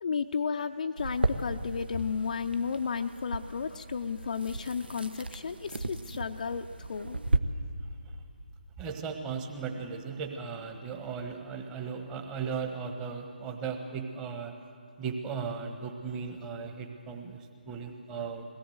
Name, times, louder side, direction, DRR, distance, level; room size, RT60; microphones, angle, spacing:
voice 1, 0.0-7.2, left 6 dB, 50° left, 5 dB, 0.5 m, -33 dB
sound 1, 1.0-7.4, right 2 dB, 70° right, 1.2 m, -35 dB
voice 2, 8.8-14.5 15.0-17.4 17.7-18.4, right 5 dB, 15° right, 5 dB, 1.3 m, -36 dB
21.5 x 17.5 x 7.9 m, 2.4 s
figure-of-eight pair, 150°, 6 cm